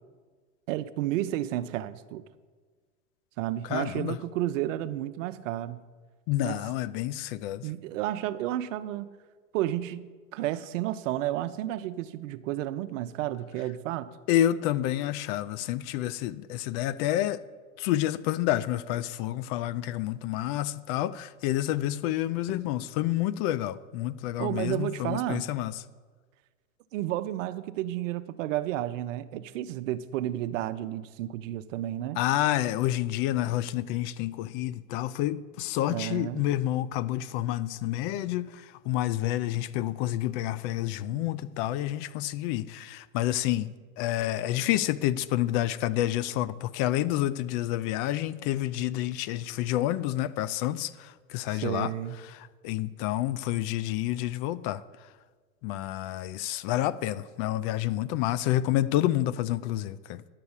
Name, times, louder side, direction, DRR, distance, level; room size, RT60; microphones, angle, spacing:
voice 1, 0.7-2.2 3.4-5.8 6.4-6.6 7.6-9.1 9.5-14.1 24.4-25.4 26.9-32.2 35.9-36.5 51.5-52.2, right 13 dB, 65° right, 0.7 m, -32 dB
voice 2, 3.7-4.2 6.3-7.6 14.3-17.4 17.8-25.7 32.2-43.7 44.0-51.9 52.6-54.8 55.6-60.2, left 14 dB, 45° left, 0.5 m, -29 dB
10.5 x 6.7 x 7.2 m
hypercardioid pair, 115°, 41 cm